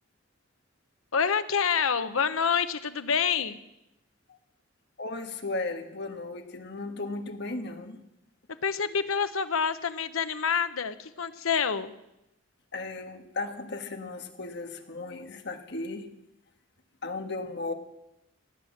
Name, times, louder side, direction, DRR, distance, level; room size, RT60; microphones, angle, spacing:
voice 1, 1.1-3.6 8.6-11.9, left 6 dB, 80° left, 11 dB, 0.9 m, -27 dB
voice 2, 5.0-8.0 12.7-16.1 17.0-17.7, left 3 dB, 55° left, 6 dB, 1.5 m, -35 dB
17.5 x 9.4 x 7.4 m, 0.89 s
head